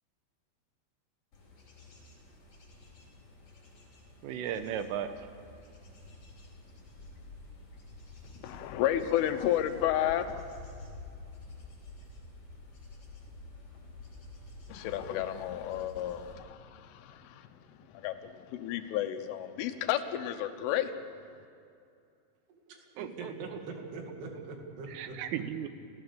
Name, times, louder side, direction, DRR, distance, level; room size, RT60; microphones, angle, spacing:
Bird / Insect / Wind, 1.3-16.3, left 2 dB, 30° left, 4.6 m, -50 dB
voice 1, 4.2-5.3 23.0-23.3 24.9-25.7, right 9 dB, 90° right, 9 dB, 3.7 m, -36 dB
voice 2, 8.4-10.4 14.7-17.5 17.9-20.9, left 11 dB, 85° left, 8 dB, 3.6 m, -32 dB
voice 3, 22.5-25.2, right 3 dB, 60° right, 2 dB, 4.1 m, -43 dB
29.5 x 15.5 x 6.9 m, 2.5 s
omnidirectional pair, 5.6 m